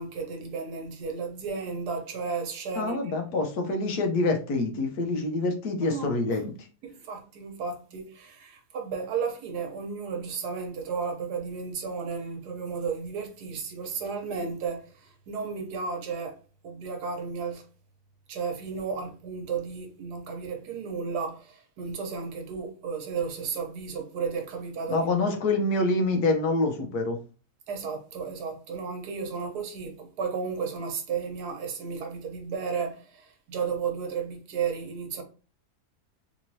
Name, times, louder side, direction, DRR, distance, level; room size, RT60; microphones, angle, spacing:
voice 1, 0.0-3.1 5.8-6.4 6.8-16.4 16.6-17.6 18.3-25.4 26.8-26.9 27.7-35.2, right 5 dB, 85° right, 1.4 m, -33 dB
voice 2, 2.8-6.5 24.9-27.2, left 2 dB, 75° left, 1.3 m, -26 dB
3.4 x 3.1 x 2.7 m
omnidirectional pair, 1.7 m